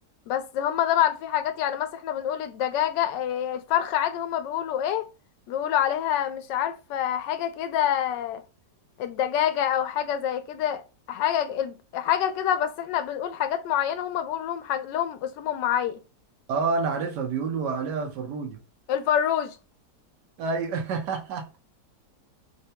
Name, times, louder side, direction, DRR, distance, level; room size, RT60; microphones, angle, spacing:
voice 1, 0.3-5.1 5.5-8.4 9.0-10.8 11.1-16.0 18.9-19.6, left 10 dB, 85° left, 1.2 m, -26 dB
voice 2, 16.5-18.6 20.4-21.5, right 4 dB, 75° right, 1.3 m, -28 dB
3.5 x 2.1 x 2.7 m
omnidirectional pair, 1.9 m